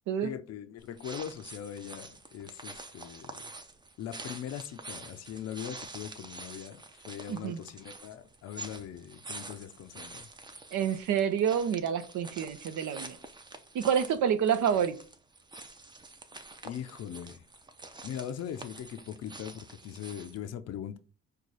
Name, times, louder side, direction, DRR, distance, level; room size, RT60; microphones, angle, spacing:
voice 1, 0.2-3.5 4.0-10.3 16.6-17.4 18.0-21.0, left 9 dB, 60° left, 0.5 m, -41 dB
sound 1, 0.8-20.5, right 2 dB, 15° right, 0.5 m, -47 dB
voice 2, 7.3-7.6 10.7-13.2 13.7-15.0, right 8 dB, 75° right, 0.7 m, -28 dB
4.7 x 2.2 x 3.9 m
cardioid pair, 90°, 30 cm